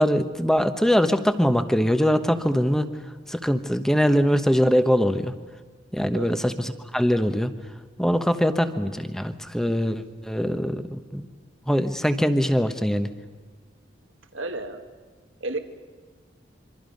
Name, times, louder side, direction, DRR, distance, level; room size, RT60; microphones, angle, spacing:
voice 1, 0.0-2.9 3.3-5.3 5.9-7.5 8.0-11.3 11.7-13.1, equal, 5° left, 9 dB, 1.0 m, -22 dB
voice 2, 14.3-14.8 15.4-15.6, right 2 dB, 85° right, 6 dB, 1.7 m, -32 dB
26.0 x 24.5 x 5.3 m, 1.5 s
head